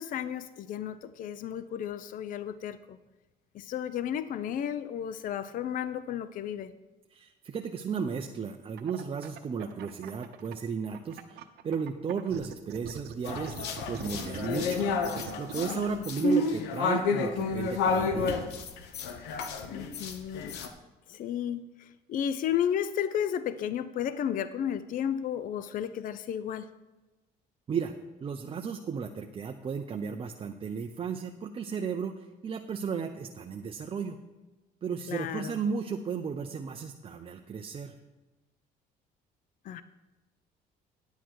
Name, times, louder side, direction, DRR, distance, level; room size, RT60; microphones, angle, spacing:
voice 1, 0.0-3.0 3.5-6.7 15.6-16.1 19.7-20.6 21.1-26.7 35.1-35.6 39.6-39.8, left 9 dB, 55° left, 14 dB, 0.5 m, -33 dB
voice 2, 7.1-14.8 15.4-18.4 27.7-27.9 28.2-34.2 34.8-37.9, right 6 dB, 35° right, 4 dB, 0.6 m, -34 dB
sound 1, 8.8-10.5 10.9-15.6, right 10 dB, 75° right, 0.9 m, -42 dB
sound 2, 13.3-20.7, left 4 dB, 85° left, 1.0 m, -30 dB
10.5 x 8.2 x 4.6 m, 1.1 s
cardioid pair, 110°, 17 cm